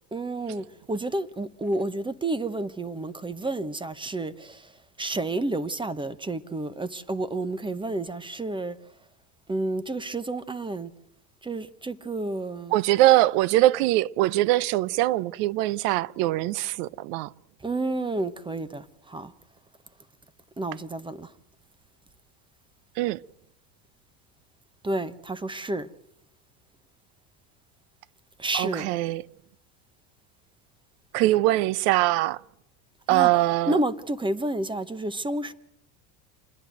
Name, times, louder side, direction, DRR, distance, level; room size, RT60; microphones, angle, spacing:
voice 1, 0.1-4.7 5.0-8.8 9.5-10.9 11.4-12.7 17.6-19.3 20.6-21.3 24.8-25.9 28.4-28.9 33.1-35.5, right 2 dB, 10° right, 0.9 m, -30 dB
voice 2, 12.7-17.3 23.0-23.2 28.5-29.2 31.1-32.4 33.1-33.7, right 16 dB, 75° right, 0.8 m, -22 dB
28.0 x 10.5 x 9.2 m
supercardioid pair, 125°, 47 cm